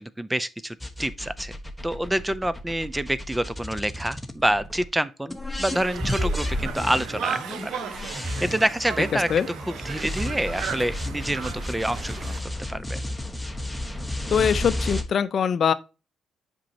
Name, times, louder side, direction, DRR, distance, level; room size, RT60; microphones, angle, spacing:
voice 1, 0.0-1.6 1.8-7.7 8.1-12.4 12.7-13.0, right 1 dB, 10° right, 0.5 m, -27 dB
sound 1, 0.8-4.9 5.3-15.0, left 1 dB, 5° left, 1.1 m, -32 dB
Conversation, 5.7-12.4, right 7 dB, 80° right, 0.9 m, -36 dB
voice 2, 14.3-15.7, left 7 dB, 55° left, 0.5 m, -22 dB
7.5 x 5.3 x 2.8 m
cardioid pair, 75°, 0 cm